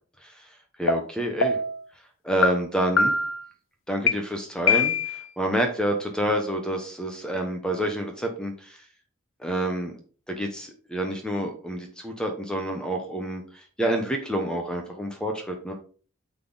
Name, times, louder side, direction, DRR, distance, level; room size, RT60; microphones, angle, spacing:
voice 1, 0.8-1.6 2.2-3.1 3.9-8.8 9.4-9.9 10.3-15.7, right 1 dB, 5° left, 3 dB, 0.9 m, -28 dB
sound 1, 0.9-1.0 1.4-1.8 2.4-2.5 3.0-3.4 4.1-4.2 4.7-5.3, left 4 dB, 65° left, 0.9 m, -22 dB
9.3 x 4.1 x 3.9 m, 0.40 s
head